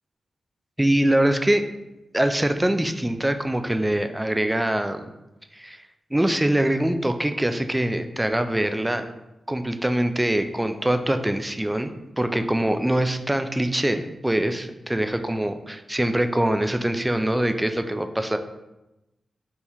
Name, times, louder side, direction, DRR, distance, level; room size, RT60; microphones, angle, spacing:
voice 1, 0.8-1.7 2.1-5.1 5.5-5.8 6.1-9.1 9.5-11.9 12.2-18.4, right 1 dB, 10° right, 8 dB, 0.3 m, -23 dB
4.4 x 2.8 x 3.4 m, 0.97 s
wide cardioid pair, 85°, 0 cm